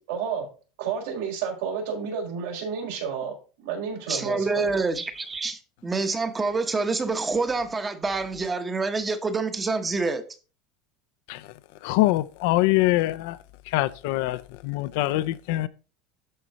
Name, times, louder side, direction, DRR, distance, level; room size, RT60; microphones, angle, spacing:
voice 1, 0.1-0.5 0.8-4.7, right 6 dB, 80° right, 4.9 m, -31 dB
voice 2, 4.1-10.2, right 3 dB, 15° right, 1.0 m, -27 dB
voice 3, 11.8-13.4 13.7-15.7, left 17 dB, 65° left, 0.6 m, -24 dB
12.5 x 4.5 x 4.0 m
supercardioid pair, 155°, 0 cm